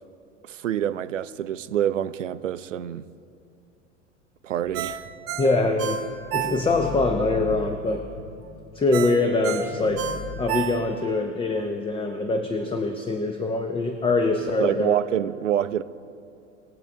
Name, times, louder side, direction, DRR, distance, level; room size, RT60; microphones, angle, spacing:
voice 1, 0.4-3.1 4.4-5.0 14.6-15.8, right 11 dB, 80° right, 0.5 m, -26 dB
sound 1, 4.6-9.0 9.4-10.4, left 4 dB, 70° left, 1.4 m, -39 dB
Ringtone, 4.7-7.0 7.4-7.5 8.9-11.2 11.6-11.7, right 9 dB, 40° right, 1.1 m, -30 dB
voice 2, 5.4-6.0 6.3-8.0 8.7-10.1 10.4-15.0, left 2 dB, 15° left, 0.7 m, -24 dB
21.5 x 7.7 x 3.4 m
figure-of-eight pair, 80°, 37 cm